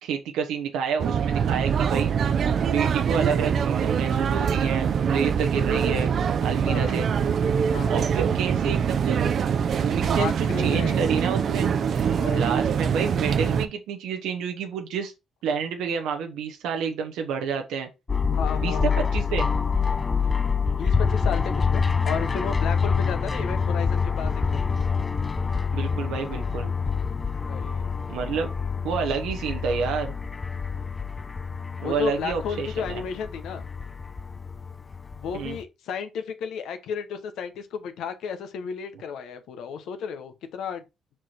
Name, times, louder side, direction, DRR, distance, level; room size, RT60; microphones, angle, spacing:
voice 1, 0.0-2.1 2.6-6.1 6.4-7.1 7.9-9.3 9.7-11.7 12.3-15.1 15.4-17.9 18.6-19.5 25.7-26.7 28.1-28.5 28.8-30.1 31.8-33.0 35.3-35.6, right 6 dB, 90° right, 0.8 m, -29 dB
sound 1, 1.0-13.7, right 7 dB, 55° right, 0.5 m, -24 dB
voice 2, 6.6-7.1 7.7-7.9 10.1-11.0 12.2-12.5 18.3-19.1 20.7-24.7 27.5-28.0 31.8-33.7 35.2-40.8, left 6 dB, 80° left, 1.0 m, -33 dB
sound 2, 18.1-35.6, left 5 dB, 25° left, 0.4 m, -26 dB
4.8 x 4.5 x 4.3 m
cardioid pair, 90°, 0 cm